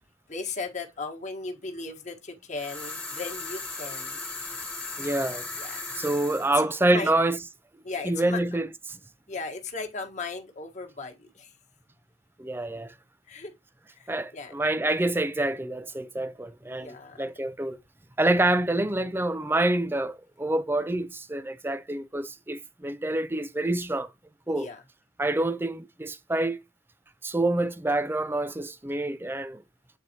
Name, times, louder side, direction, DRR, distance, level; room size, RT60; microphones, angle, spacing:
voice 1, 0.3-4.5 5.6-6.1 6.5-7.1 7.8-8.4 9.3-11.5 13.3-13.5 13.9-14.5 16.7-17.3 24.5-24.8, left 4 dB, 35° left, 1.3 m, -37 dB
sound 1, 2.6-6.5, left 3 dB, 10° left, 1.2 m, -37 dB
voice 2, 5.0-5.5 6.0-7.4 8.1-9.0 12.4-12.9 14.1-17.8 18.2-24.1 24.5-24.7 25.2-26.6 27.2-29.6, right 2 dB, 10° right, 0.4 m, -27 dB
8.3 x 4.0 x 2.8 m
head